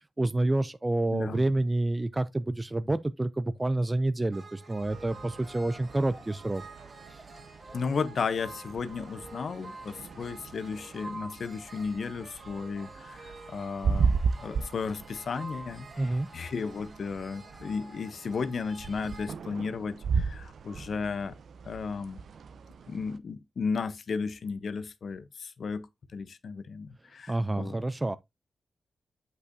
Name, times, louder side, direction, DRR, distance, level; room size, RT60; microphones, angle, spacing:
voice 1, 0.0-6.6 7.1-7.2 16.0-16.3 27.3-28.2, right 2 dB, 20° right, 0.3 m, -28 dB
voice 2, 1.1-1.4 7.7-21.3 21.6-22.2 22.9-25.9 26.1-27.8, left 5 dB, 60° left, 0.7 m, -34 dB
sound 1, 4.3-19.3, right 2 dB, 35° right, 2.2 m, -48 dB
sound 2, 4.8-23.2, right 5 dB, 70° right, 0.5 m, -36 dB
8.4 x 5.5 x 2.6 m
wide cardioid pair, 115°, 0 cm